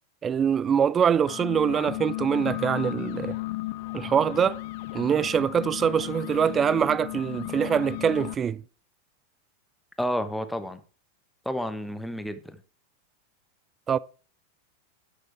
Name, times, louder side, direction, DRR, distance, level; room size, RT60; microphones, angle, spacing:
voice 1, 0.2-3.4 3.9-4.6 4.9-8.6 13.9-14.0, right 7 dB, 20° right, 0.4 m, -24 dB
sound 1, 1.1-8.4, left 18 dB, 50° left, 0.8 m, -35 dB
voice 2, 10.0-10.8 11.4-12.6, equal, 5° left, 1.0 m, -30 dB
11.0 x 6.7 x 4.5 m
figure-of-eight pair, 90°, 0 cm